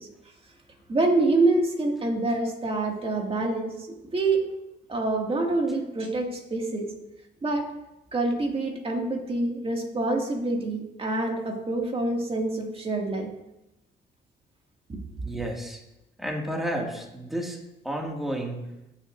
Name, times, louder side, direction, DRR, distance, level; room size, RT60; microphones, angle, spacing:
voice 1, 0.9-3.7 4.1-4.4 4.9-6.9 7.4-7.7 8.1-13.3 14.9-15.0, right 2 dB, 30° right, 1 dB, 2.2 m, -26 dB
voice 2, 15.2-15.8 16.2-17.6 17.8-18.7, right 1 dB, ahead, -1 dB, 2.2 m, -31 dB
17.0 x 7.1 x 2.6 m, 0.93 s
cardioid pair, 90°, 20 cm